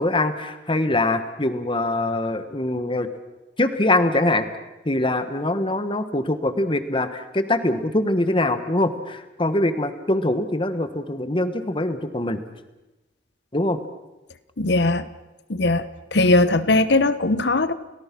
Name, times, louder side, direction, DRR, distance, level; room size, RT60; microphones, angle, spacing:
voice 1, 0.0-3.1 3.6-4.5 4.8-12.4 13.5-13.8, left 1 dB, 25° left, 10 dB, 1.5 m, -23 dB
voice 2, 14.6-15.1 15.5-15.9 16.1-17.7, left 2 dB, 65° left, 14 dB, 1.1 m, -19 dB
29.5 x 18.5 x 6.1 m, 1.1 s
head